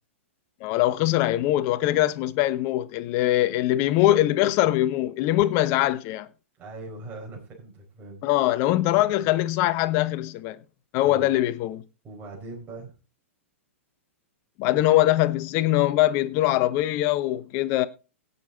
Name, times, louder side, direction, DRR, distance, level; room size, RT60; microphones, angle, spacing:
voice 1, 0.6-6.3 8.2-10.6 10.9-11.8 14.6-17.9, left 15 dB, 40° left, 1.1 m, -22 dB
voice 2, 6.6-8.2 11.0-11.4 12.0-12.9, right 3 dB, 25° right, 5.1 m, -40 dB
17.0 x 7.0 x 4.0 m
figure-of-eight pair, 110°, 7 cm